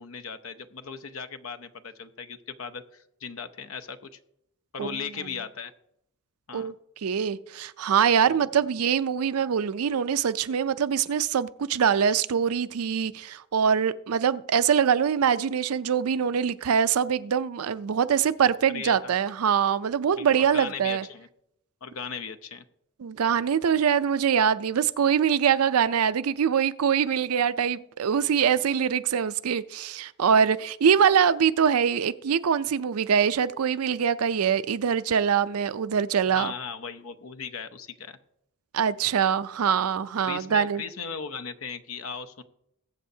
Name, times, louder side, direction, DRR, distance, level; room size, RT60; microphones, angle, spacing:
voice 1, 0.0-4.2 4.7-5.7 6.5-6.7 8.3-8.5 18.7-19.1 20.1-21.3 21.8-22.6 36.3-38.2 40.2-42.4, left 6 dB, 70° left, 0.7 m, -37 dB
voice 2, 7.0-21.0 23.0-36.5 38.7-40.8, right 7 dB, 85° right, 0.5 m, -24 dB
21.0 x 7.7 x 2.8 m
head